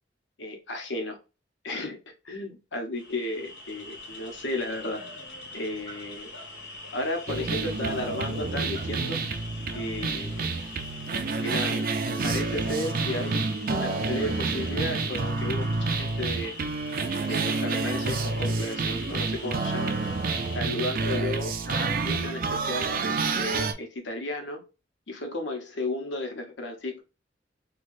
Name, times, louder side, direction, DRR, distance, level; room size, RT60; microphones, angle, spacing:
voice 1, 0.4-1.2 1.6-5.0 5.5-6.3 6.9-9.2 9.7-10.5 11.4-11.9 12.2-16.5 17.2-19.9 20.5-22.9 23.4-24.7 25.1-27.0, left 2 dB, 90° left, 4 dB, 1.0 m, -34 dB
sound 1, 2.9-20.6, left 2 dB, 70° left, 1.6 m, -43 dB
sound 2, 7.3-23.7, right 3 dB, 50° right, 0.4 m, -29 dB
3.2 x 2.4 x 2.6 m, 0.30 s
head